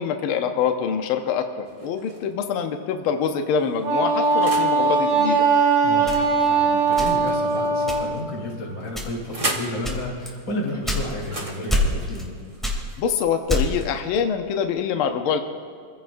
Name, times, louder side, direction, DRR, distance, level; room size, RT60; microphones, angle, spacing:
voice 1, 0.0-5.4 13.0-15.4, left 7 dB, 80° left, 5 dB, 1.2 m, -25 dB
sound 1, 1.7-2.4 3.2-4.8 6.8-8.0 8.8-9.8 11.2-13.1, right 2 dB, 45° right, 0.4 m, -35 dB
Wind instrument woodwind instrument, 3.8-8.1, right 4 dB, 80° right, 3.1 m, -20 dB
voice 2, 5.8-12.3, left 1 dB, 35° left, -5 dB, 4.5 m, -32 dB
sound 2, 6.1-7.4 7.9-8.3 8.9-9.4 9.8-11.4 11.7-12.3 12.6-13.9, left 1 dB, ahead, 2.2 m, -26 dB
27.0 x 16.0 x 2.6 m, 2.3 s
omnidirectional pair, 3.3 m